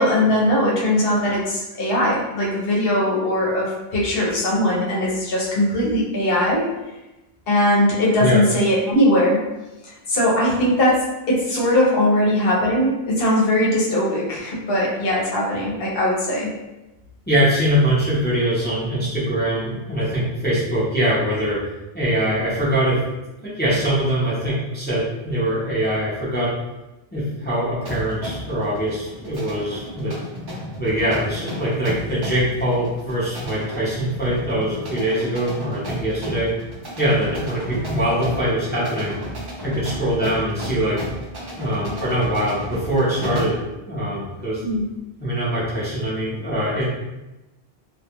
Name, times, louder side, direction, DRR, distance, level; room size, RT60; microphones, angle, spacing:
voice 1, 0.0-6.7 7.5-9.4 9.8-16.5 44.6-44.9, left 1 dB, 70° left, -4 dB, 0.9 m, -20 dB
voice 2, 17.3-21.6 21.9-23.0 23.4-26.5 27.1-30.2 30.8-36.5 37.0-39.2 39.6-41.0 41.6-44.6 45.2-46.9, right 1 dB, 10° left, -9 dB, 0.6 m, -23 dB
sound 1, 27.8-43.7, equal, 40° right, 0.4 m, -33 dB
2.3 x 2.2 x 2.8 m, 1.0 s
omnidirectional pair, 1.0 m